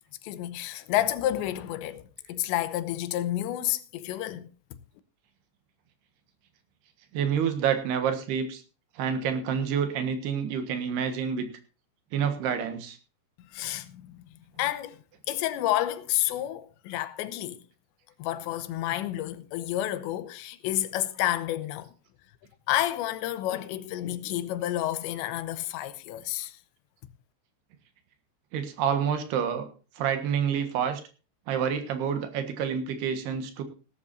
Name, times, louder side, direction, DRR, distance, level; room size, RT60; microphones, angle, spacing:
voice 1, 0.2-4.5 13.4-14.3 14.6-17.6 18.2-21.9 22.7-26.6, left 13 dB, 90° left, 3.1 m, -30 dB
voice 2, 7.1-8.6 9.0-11.5 12.1-13.0 28.5-29.7 30.0-31.0 31.5-33.6, right 7 dB, 70° right, 3.3 m, -28 dB
18.5 x 12.0 x 2.7 m
omnidirectional pair, 5.1 m